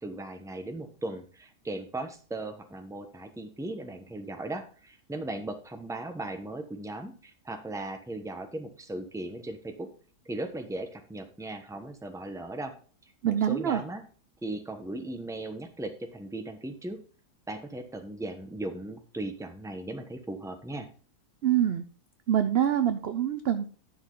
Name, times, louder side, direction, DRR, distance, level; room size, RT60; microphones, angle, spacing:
voice 1, 0.0-9.9 10.2-12.7 13.2-14.0 14.4-17.0 17.5-20.9, right 2 dB, 5° right, 6 dB, 0.8 m, -37 dB
voice 2, 13.2-13.8 21.4-21.8 22.3-23.6, right 10 dB, 60° right, 10 dB, 0.6 m, -25 dB
10.5 x 6.3 x 3.9 m, 0.40 s
omnidirectional pair, 1.7 m